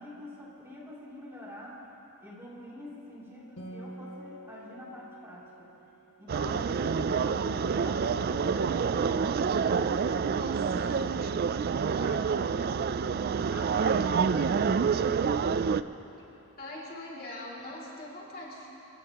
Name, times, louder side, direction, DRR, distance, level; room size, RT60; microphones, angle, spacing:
voice 1, 0.0-1.8 2.2-5.7 6.2-15.4 15.9-16.0, left 1 dB, 10° right, -7 dB, 2.9 m, -45 dB
Acoustic guitar, 3.6-7.3, right 1 dB, 80° left, 1.8 m, -48 dB
sound 1, 6.3-15.8, right 6 dB, 45° right, 0.3 m, -27 dB
sound 2, 6.8-16.0, equal, 60° right, 2.4 m, -52 dB
voice 2, 10.4-11.5 16.6-18.7, left 1 dB, 40° left, -5 dB, 2.6 m, -43 dB
27.0 x 16.0 x 3.0 m, 3.0 s
head